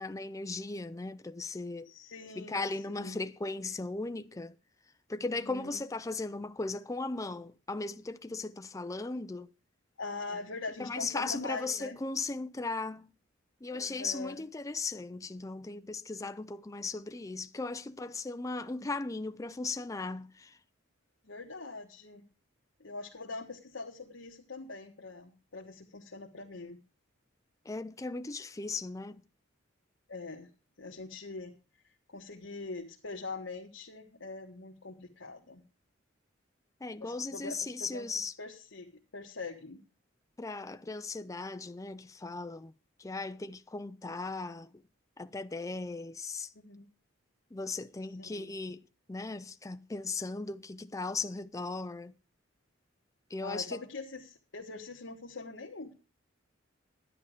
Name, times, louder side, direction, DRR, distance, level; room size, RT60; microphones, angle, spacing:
voice 1, 0.0-1.9 2.4-4.6 5.1-9.5 10.8-13.1 13.6-20.6 27.7-29.2 36.8-38.3 40.4-42.7 43.0-44.7 45.2-46.5 47.5-48.8 49.1-52.1 53.3-53.8, left 3 dB, 15° left, 0.5 m, -37 dB
voice 2, 1.8-3.2 5.3-5.8 10.0-12.0 13.7-14.4 21.2-22.2 22.8-26.8 30.1-30.5 30.8-31.5 31.8-35.6 37.0-39.8 46.5-46.9 48.2-48.6 53.4-55.9, left 3 dB, 75° left, 1.4 m, -43 dB
11.0 x 9.9 x 5.0 m
head